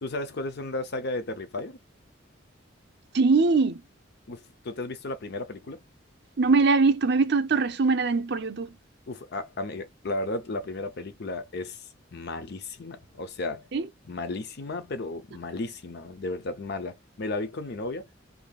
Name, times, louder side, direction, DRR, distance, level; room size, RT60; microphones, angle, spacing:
voice 1, 0.0-1.8 4.3-5.8 9.1-11.8 12.1-13.7 14.0-18.1, left 2 dB, 55° left, 0.7 m, -34 dB
voice 2, 3.1-3.8 6.4-8.8 13.7-13.9, right 4 dB, 60° right, 0.7 m, -22 dB
2.8 x 2.7 x 2.3 m
head